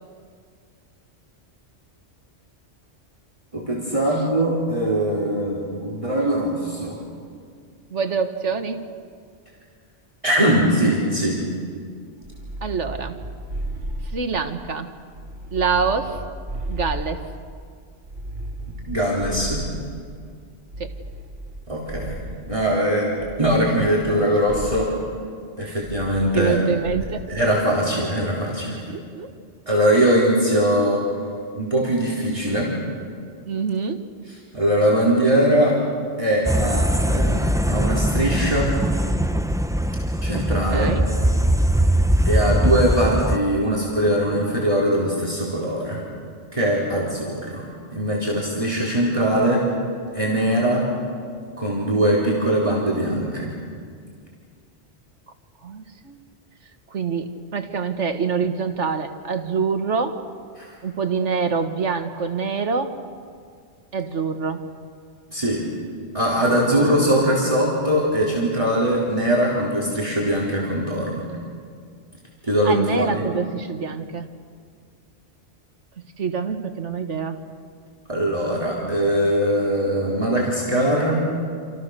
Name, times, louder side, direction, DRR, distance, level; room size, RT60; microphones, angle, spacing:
voice 1, 3.5-7.0 10.2-11.4 18.9-19.6 21.7-22.2 22.5-23.1 23.4-24.9 25.6-26.6 27.3-28.8 29.7-31.0 31.5-32.7 34.5-35.8 36.2-38.7 40.2-40.9 42.2-46.0 46.5-47.6 47.9-49.6 50.1-50.8 51.6-53.5 60.6-60.7 65.3-65.6 66.1-71.3 72.5-73.2 78.1-81.3, right 1 dB, 30° right, -5 dB, 4.4 m, -21 dB
voice 2, 7.9-8.8 12.6-13.2 14.1-14.9 15.5-16.2 16.7-17.2 20.8-20.9 25.6-25.9 26.4-27.2 28.9-29.3 33.5-34.0 40.7-41.0 55.6-56.2 56.9-60.2 60.8-63.0 63.9-64.6 72.6-74.3 76.2-77.4, right 5 dB, 90° right, 8 dB, 1.9 m, -25 dB
sound 1, 12.2-14.7 15.1-17.6 18.0-20.2 20.7-22.6 23.2-24.2 24.5-25.0 25.8-26.5 26.8-27.3, right 1 dB, 65° right, 3.6 m, -34 dB
sound 2, 36.4-43.4, equal, 5° right, 0.4 m, -21 dB
29.0 x 28.0 x 6.8 m, 2.1 s
omnidirectional pair, 1.2 m